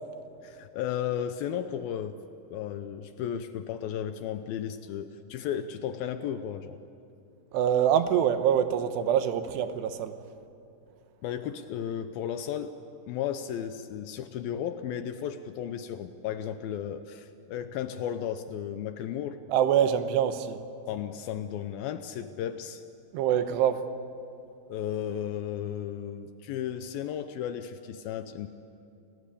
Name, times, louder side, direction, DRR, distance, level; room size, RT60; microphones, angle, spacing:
voice 1, 0.4-2.2 2.5-6.8 11.2-12.8 13.1-19.4 20.9-22.8 24.7-28.5, left 9 dB, 75° left, 10 dB, 2.3 m, -34 dB
voice 2, 7.5-10.1 19.5-20.6 23.1-23.8, right 9 dB, 85° right, 10 dB, 3.2 m, -25 dB
29.5 x 18.0 x 8.4 m, 2.7 s
omnidirectional pair, 4.8 m